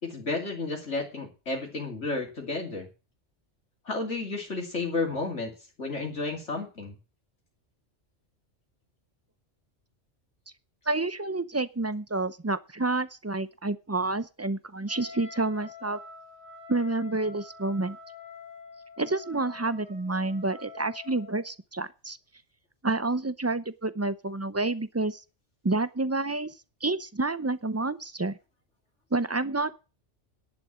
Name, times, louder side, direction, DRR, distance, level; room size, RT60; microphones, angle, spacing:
voice 1, 0.0-2.9 3.8-5.5 5.8-7.0, left 3 dB, 65° left, 1 dB, 3.1 m, -32 dB
voice 2, 10.9-16.0 16.7-18.0 19.0-22.2 22.8-25.2 25.6-26.5 26.8-28.4 29.1-29.7, right 2 dB, 20° right, 15 dB, 0.4 m, -29 dB
Wind instrument woodwind instrument, 14.9-21.5, left 5 dB, 75° right, 5.1 m, -47 dB
11.0 x 8.7 x 7.5 m, 0.32 s
omnidirectional pair, 1.3 m